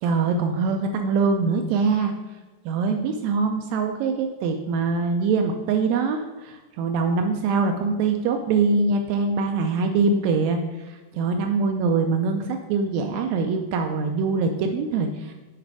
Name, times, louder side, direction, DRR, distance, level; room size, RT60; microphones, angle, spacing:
voice 1, 0.0-2.1 2.6-15.3, right 4 dB, 90° right, 5 dB, 1.6 m, -23 dB
7.3 x 5.0 x 4.7 m, 1.2 s
omnidirectional pair, 3.9 m